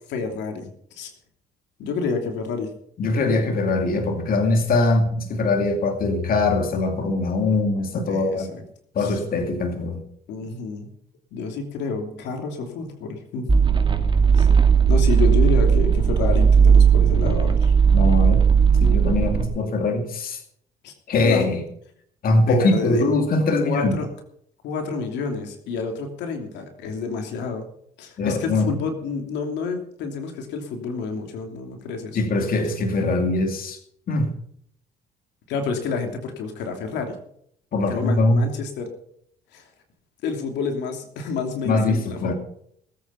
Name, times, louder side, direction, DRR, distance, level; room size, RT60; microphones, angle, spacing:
voice 1, 0.1-1.1 1.8-2.7 3.1-3.4 8.1-8.6 9.0-9.2 10.3-10.9 11.3-13.5 14.3-14.5 14.9-17.7 20.8-20.9 21.2-21.5 22.5-23.1 23.6-24.1 24.6-27.6 28.0-32.2 35.5-37.2 37.9-38.9 39.5-39.6 40.2-42.3, left 4 dB, 80° left, 5 dB, 2.9 m, -29 dB
voice 2, 3.0-8.5 8.9-10.0 17.9-18.5 18.8-20.4 21.1-21.6 22.2-23.9 28.2-28.7 32.1-33.8 34.1-34.3 37.7-38.5 41.6-42.3, left 2 dB, 55° left, 4 dB, 2.5 m, -22 dB
sound 1, 13.5-19.4, right 6 dB, 25° right, 2.4 m, -16 dB
19.0 x 8.7 x 5.7 m, 0.67 s
supercardioid pair, 80°, 18 cm